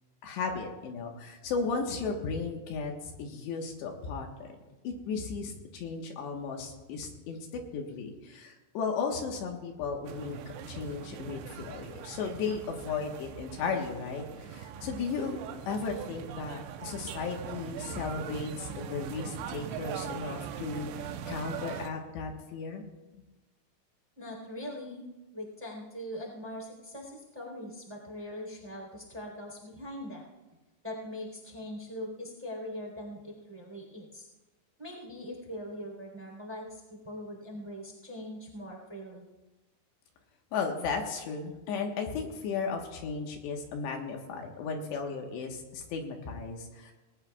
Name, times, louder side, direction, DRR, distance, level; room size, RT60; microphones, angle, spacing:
voice 1, 0.2-10.4 10.7-14.2 14.5-15.4 15.7-22.8 40.5-46.9, left 5 dB, 75° left, 2 dB, 3.5 m, -35 dB
sound 1, 10.0-21.9, right 8 dB, 90° right, 3.1 m, -41 dB
voice 2, 24.2-25.0 25.3-30.3 30.8-34.3 34.8-39.2, left 1 dB, 10° right, 0 dB, 2.9 m, -41 dB
19.5 x 18.5 x 2.4 m, 1.1 s
omnidirectional pair, 5.2 m